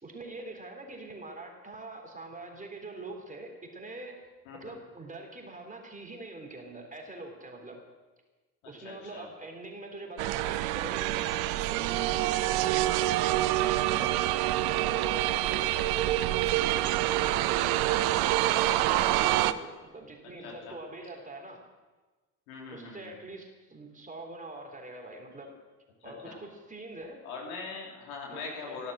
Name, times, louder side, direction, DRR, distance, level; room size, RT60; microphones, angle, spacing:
voice 1, 0.0-4.2 4.5-7.8 8.6-12.9 13.3-14.2 14.7-16.8 17.2-21.6 22.7-25.5 26.0-27.2 28.3-28.8, right 2 dB, 20° right, 2 dB, 3.7 m, -44 dB
voice 2, 4.5-4.8 8.6-9.3 13.8-14.2 20.4-20.8 22.5-23.1 26.0-26.4 27.2-28.9, left 4 dB, 70° left, -1 dB, 3.3 m, -42 dB
sound 1, 10.2-19.5, right 15 dB, 60° right, 0.7 m, -26 dB
15.0 x 12.0 x 6.3 m, 1.2 s
figure-of-eight pair, 55°, 44 cm